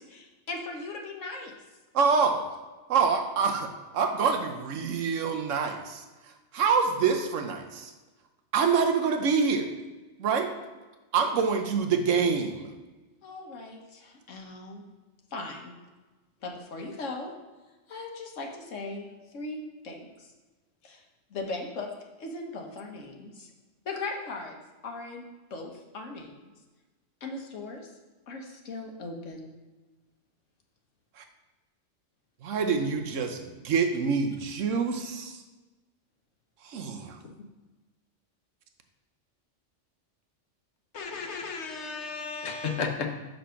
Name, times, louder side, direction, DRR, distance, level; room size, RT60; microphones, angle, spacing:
voice 1, 0.1-1.5 13.2-14.8 15.3-15.7 16.4-17.3 17.9-20.3 20.8-21.0 21.3-21.9 22.2-23.5 23.8-24.6 24.8-26.5 27.2-27.9 28.3-29.5, left 3 dB, 90° left, 2 dB, 1.4 m, -38 dB
voice 2, 1.9-2.5 2.9-6.0 6.5-7.9 8.5-9.7 10.2-10.5 11.1-12.7 31.2-31.3 32.4-35.4 36.6-37.2, right 5 dB, 85° right, 5 dB, 1.2 m, -26 dB
voice 3, 40.9-43.1, left 5 dB, 65° left, 4 dB, 1.1 m, -33 dB
5.7 x 5.3 x 5.7 m, 1.2 s
omnidirectional pair, 1.3 m